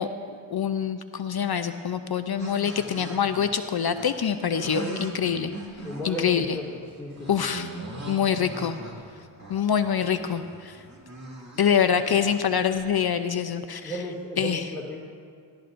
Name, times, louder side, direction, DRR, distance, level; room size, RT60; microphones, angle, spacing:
voice 1, 0.0-5.5 6.0-6.6 7.3-7.7 8.1-8.8 9.5-10.8 11.6-14.0 14.4-14.7, left 8 dB, 50° left, 9 dB, 0.6 m, -25 dB
sound 1, 2.4-13.2, right 2 dB, 35° right, 2.3 m, -41 dB
voice 2, 4.5-5.0 5.8-6.6 7.0-7.5 13.8-15.0, right 1 dB, 5° left, -6 dB, 2.3 m, -34 dB
20.0 x 14.5 x 2.6 m, 2.2 s
cardioid pair, 50°, 49 cm